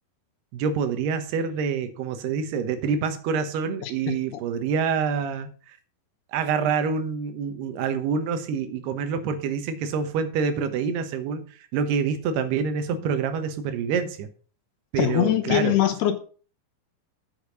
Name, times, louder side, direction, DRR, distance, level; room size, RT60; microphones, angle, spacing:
voice 1, 0.5-5.8 6.3-14.3 14.9-15.7, right 6 dB, 80° right, 9 dB, 3.2 m, -27 dB
voice 2, 15.0-16.2, left 12 dB, 80° left, 3 dB, 2.9 m, -22 dB
8.4 x 6.5 x 6.1 m, 0.40 s
omnidirectional pair, 4.6 m